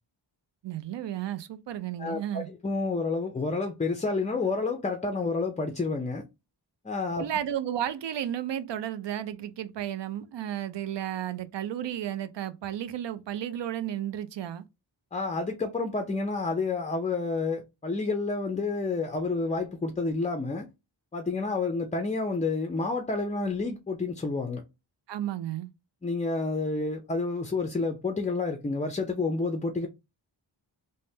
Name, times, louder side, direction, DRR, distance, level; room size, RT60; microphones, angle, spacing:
voice 1, 0.6-2.5 7.2-14.6 25.1-25.7, right 11 dB, 65° right, 0.5 m, -33 dB
voice 2, 2.0-6.2 6.8-7.2 15.1-20.7 21.1-24.6 26.0-29.9, left 3 dB, 15° left, 0.4 m, -29 dB
3.2 x 2.1 x 2.7 m
cardioid pair, 55°, 46 cm